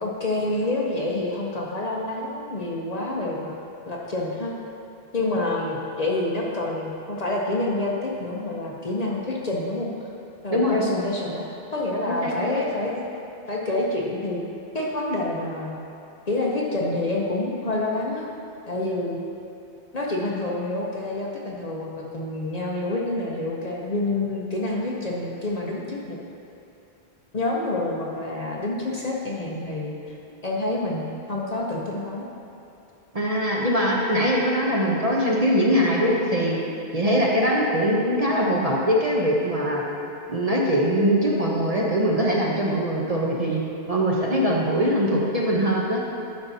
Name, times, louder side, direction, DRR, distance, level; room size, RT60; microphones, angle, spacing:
voice 1, 0.0-3.5 3.9-4.5 5.1-9.9 10.4-11.4 11.7-13.2 13.5-14.4 14.7-15.8 16.3-18.3 18.7-19.2 19.9-26.2 27.3-29.9 30.4-32.3, left 2 dB, 45° left, -3 dB, 0.7 m, -27 dB
voice 2, 10.5-11.0 12.1-12.5 33.1-36.6 36.9-39.8 40.3-43.6 43.9-46.0, equal, 40° right, -3 dB, 0.8 m, -22 dB
11.0 x 5.8 x 2.7 m, 2.8 s
omnidirectional pair, 1.1 m